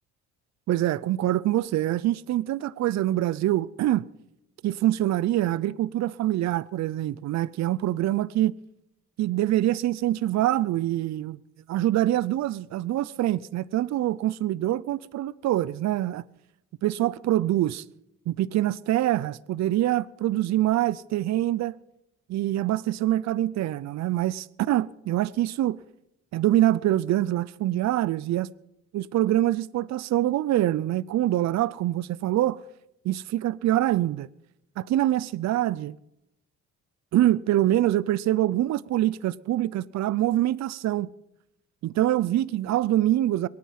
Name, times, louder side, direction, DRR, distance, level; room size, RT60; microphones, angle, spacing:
voice 1, 0.7-4.1 4.6-8.6 9.2-11.4 11.7-16.2 16.8-17.8 18.3-21.8 22.3-25.8 26.3-28.5 28.9-32.6 33.0-34.3 34.8-36.0 37.1-41.1 41.8-43.5, right 14 dB, 65° right, 0.5 m, -25 dB
22.5 x 9.5 x 5.8 m
cardioid pair, 90°, 30 cm